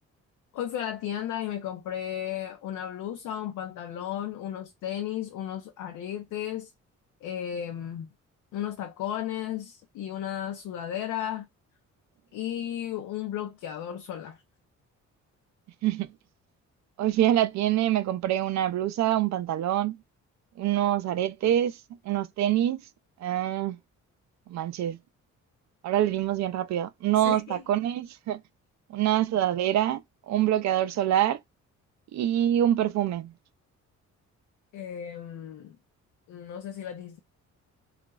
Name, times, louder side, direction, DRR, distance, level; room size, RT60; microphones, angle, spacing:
voice 1, 0.5-6.7 7.2-8.1 8.5-11.5 12.3-14.4 27.2-27.6 34.7-35.8 36.3-37.2, left 10 dB, 85° left, 0.6 m, -34 dB
voice 2, 17.0-20.0 20.6-21.8 22.1-22.8 23.2-23.8 24.5-25.0 25.8-28.4 28.9-30.0 30.3-31.4 32.1-33.3, right 12 dB, 65° right, 0.5 m, -25 dB
3.0 x 2.4 x 2.3 m
cardioid pair, 90°, 30 cm